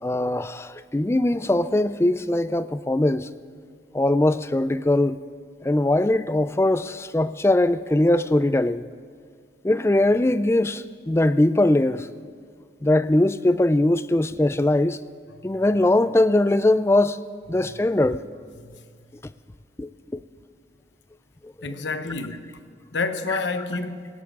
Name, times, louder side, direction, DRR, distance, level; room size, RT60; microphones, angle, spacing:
voice 1, 0.0-3.3 3.9-5.2 5.6-8.8 9.6-12.1 12.8-15.0 15.4-17.2 17.5-18.3 19.8-20.2 21.6-21.7 23.3-23.4, left 1 dB, 15° left, 0.3 m, -21 dB
voice 2, 21.6-22.5 22.9-24.1, left 3 dB, 80° left, 1.0 m, -29 dB
18.5 x 16.5 x 3.7 m
head